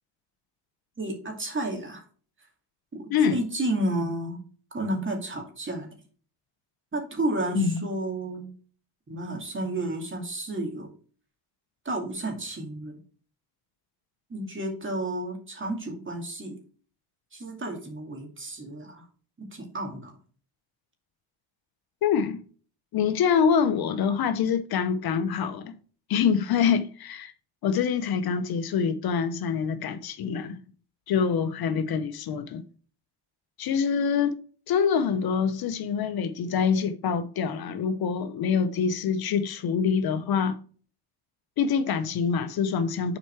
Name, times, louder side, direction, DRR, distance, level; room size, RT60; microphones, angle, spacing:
voice 1, 1.0-2.0 3.3-4.4 4.7-5.9 6.9-8.5 9.1-10.9 11.8-13.0 14.3-16.6 17.3-19.1 19.5-20.1, right 1 dB, 25° right, 2.4 m, -31 dB
voice 2, 7.5-7.8 22.0-22.4 22.9-25.7 26.1-27.3 27.6-30.6 31.1-32.6 33.6-34.4 34.7-40.6 41.6-43.2, left 6 dB, 55° left, 0.8 m, -25 dB
7.6 x 4.6 x 4.6 m
cardioid pair, 100°, 45 cm